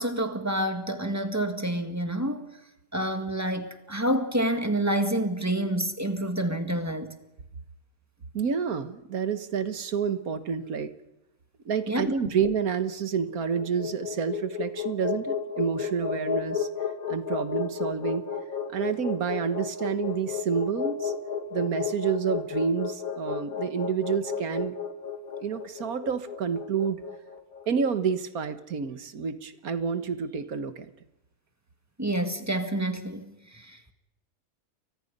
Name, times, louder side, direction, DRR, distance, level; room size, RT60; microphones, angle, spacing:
voice 1, 0.0-2.5 2.9-7.1 11.9-12.1 32.0-33.9, right 1 dB, 10° right, 1.9 m, -28 dB
voice 2, 8.3-10.9 11.7-16.7 17.1-18.2 18.7-21.1 21.5-24.7 25.3-27.0 27.7-30.9, right 6 dB, 85° right, 1.8 m, -29 dB
sound 1, 13.4-27.7, left 7 dB, 75° left, 2.4 m, -33 dB
29.5 x 23.5 x 5.4 m
omnidirectional pair, 1.5 m